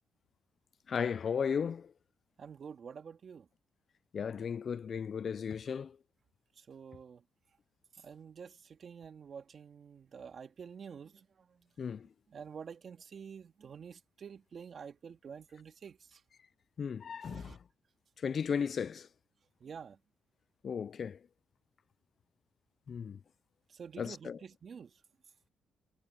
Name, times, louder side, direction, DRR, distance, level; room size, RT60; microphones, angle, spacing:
voice 1, 0.9-1.9 4.1-6.0 11.8-12.1 16.8-17.6 18.2-19.1 20.6-21.2 22.9-23.2 24.0-24.4, left 6 dB, 50° left, 0.4 m, -35 dB
voice 2, 2.4-3.5 5.7-5.8 6.5-7.2 7.9-12.0 12.3-16.2 17.2-17.6 19.6-20.0 23.7-25.0, right 6 dB, 50° right, 2.0 m, -49 dB
cardioid pair, 90°, 0 cm